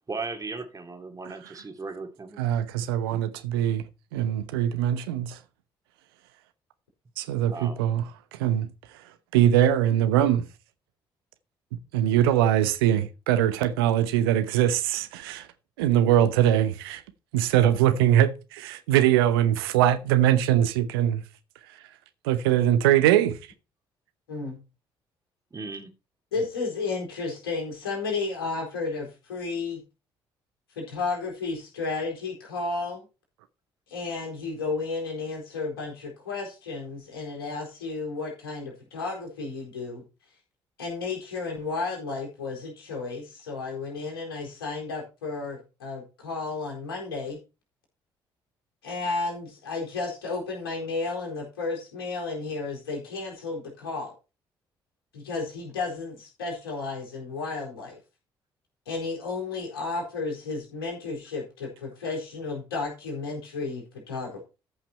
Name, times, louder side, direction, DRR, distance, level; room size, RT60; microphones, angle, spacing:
voice 1, 0.1-2.4 7.5-7.8 25.5-25.9, right 4 dB, 25° right, 2.5 m, -36 dB
voice 2, 2.4-3.9 4.1-5.4 7.2-8.0 8.3-8.7 9.3-10.5 11.9-15.5 15.8-17.0 17.3-21.2 22.2-23.4, right 11 dB, 75° right, 0.9 m, -22 dB
voice 3, 24.3-24.6 26.3-29.8 30.8-33.0 33.9-40.0 40.8-47.4 48.8-54.1 55.1-58.0 58.9-64.4, left 3 dB, 75° left, 4.2 m, -33 dB
14.0 x 5.8 x 4.4 m
figure-of-eight pair, 45°, 13 cm